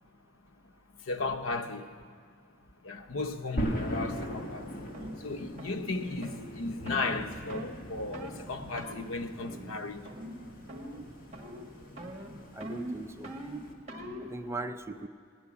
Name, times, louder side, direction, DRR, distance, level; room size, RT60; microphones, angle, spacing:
voice 1, 0.9-2.2 2.8-10.1 12.3-12.4 14.0-14.2, left 3 dB, 90° left, 0.8 m, -36 dB
sound 1, 3.6-13.7, equal, 45° left, 1.6 m, -40 dB
sound 2, 4.3-4.5 4.9-5.2 5.6-5.8 6.2-6.4 6.9-7.1 7.5-7.8 8.1-8.4 8.8-9.0 9.4-9.8 10.0-10.4 10.7-11.1 11.3-11.7 12.0-14.3, right 1 dB, 35° right, 1.4 m, -42 dB
voice 2, 12.5-13.4 14.2-15.1, right 2 dB, 15° right, 0.4 m, -39 dB
18.0 x 6.9 x 9.8 m
head